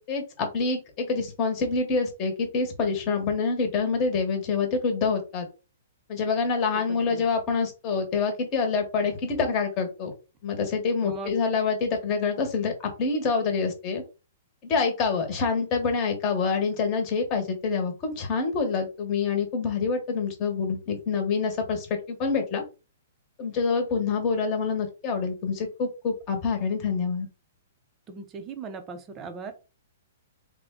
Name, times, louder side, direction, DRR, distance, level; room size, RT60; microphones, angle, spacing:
voice 1, 0.0-5.5 6.1-10.1 10.4-14.0 14.6-22.6 23.4-27.3, left 4 dB, 30° left, 5 dB, 1.1 m, -26 dB
voice 2, 6.9-7.2 11.0-11.3 28.1-29.5, right 4 dB, 20° right, 7 dB, 0.6 m, -38 dB
3.5 x 2.2 x 3.7 m, 0.31 s
hypercardioid pair, 155°, 0 cm